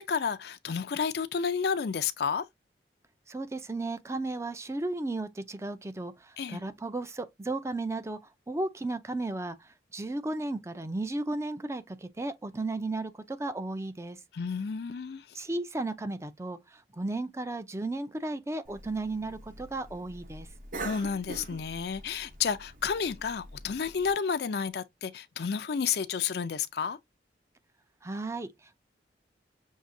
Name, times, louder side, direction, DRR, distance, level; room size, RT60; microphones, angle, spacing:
voice 1, 0.0-2.5 6.4-6.6 14.3-15.3 20.8-27.0, left 6 dB, 60° left, 0.4 m, -31 dB
voice 2, 3.3-8.2 8.5-14.2 15.3-20.5 28.0-28.8, right 2 dB, 15° right, 0.5 m, -34 dB
Cough, 18.6-24.1, right 2 dB, 45° right, 0.8 m, -44 dB
6.4 x 2.8 x 2.6 m
head